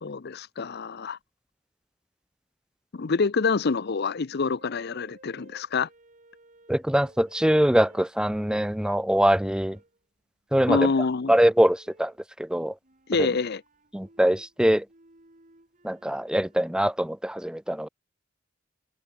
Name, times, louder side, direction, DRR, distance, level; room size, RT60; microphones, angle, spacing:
voice 1, 0.0-1.2 2.9-5.9 10.7-11.3 13.1-13.6, left 4 dB, 55° left, 0.6 m, -26 dB
sound 1, 4.6-8.8 9.4-10.0 11.6-12.3 12.8-16.8, right 2 dB, 40° right, 3.9 m, -57 dB
voice 2, 6.7-9.8 10.5-10.9 11.3-12.8 13.2-13.3 13.9-14.9 15.8-17.9, equal, 5° right, 0.7 m, -23 dB
open air
head